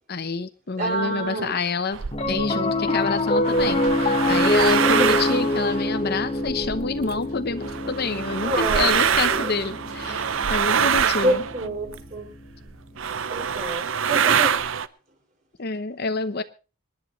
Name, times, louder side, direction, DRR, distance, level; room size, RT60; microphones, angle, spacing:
voice 1, 0.1-2.0 2.3-11.4 15.6-16.4, left 4 dB, 45° left, 11 dB, 0.8 m, -27 dB
voice 2, 0.8-1.5 5.0-5.2 8.4-9.6 11.2-12.3 13.3-14.6, right 1 dB, 35° right, 1 dB, 5.4 m, -27 dB
sound 1, 1.9-2.5 3.3-7.2 7.6-12.2 12.7-12.8 13.0-14.9, right 7 dB, 60° right, 0.6 m, -25 dB
Piano, 2.1-12.6, left 1 dB, 25° left, 1.2 m, -26 dB
sound 2, 2.7-3.3 3.7-4.2 4.6-5.6 6.1-6.3 6.6-7.5 7.8-7.9 8.1-10.9, right 4 dB, 85° right, 4.3 m, -42 dB
26.0 x 11.0 x 3.1 m, 0.35 s
head